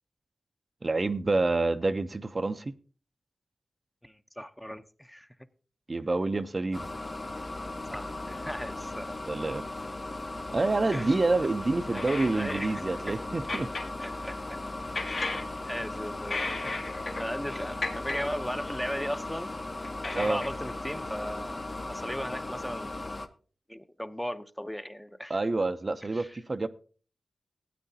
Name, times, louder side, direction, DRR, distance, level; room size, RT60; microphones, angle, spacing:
voice 1, 0.8-2.7 5.9-6.9 9.3-9.6 10.5-13.7 20.1-20.4 25.3-26.7, right 3 dB, 40° right, 0.6 m, -28 dB
voice 2, 4.0-5.3 7.9-9.2 10.9-11.2 11.9-13.2 14.0-14.6 14.9-16.8 17.2-19.5 20.0-21.6 21.9-23.0 23.7-25.4 26.1-26.4, equal, 5° left, 0.7 m, -37 dB
sound 1, 6.7-23.3, left 2 dB, 40° left, 1.0 m, -37 dB
sound 2, 12.0-12.7 13.5-14.1 14.8-15.9 16.3-17.4 17.7-18.3 19.2-19.3 19.8-21.0, left 3 dB, 70° left, 2.5 m, -35 dB
16.0 x 9.2 x 2.7 m
cardioid pair, 55°, 0 cm